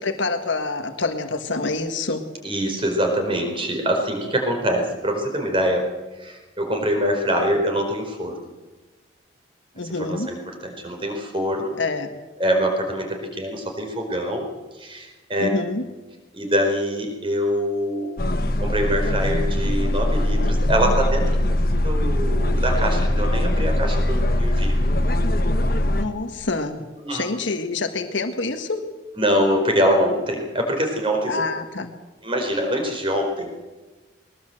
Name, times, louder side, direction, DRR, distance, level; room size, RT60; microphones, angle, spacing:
voice 1, 0.0-2.2 9.7-10.3 11.8-12.2 15.4-15.8 25.9-26.8 27.1-28.8 31.3-32.0, left 3 dB, 85° left, 6 dB, 1.6 m, -26 dB
voice 2, 2.4-5.9 6.2-8.5 9.8-11.8 12.4-14.5 14.8-15.5 16.3-18.1 18.6-21.5 21.8-24.8 27.0-27.2 29.2-31.4 32.2-33.5, equal, 30° right, 3 dB, 4.6 m, -24 dB
sound 1, 18.2-26.0, left 1 dB, 50° left, 1.5 m, -21 dB
20.5 x 19.5 x 7.9 m, 1.2 s
head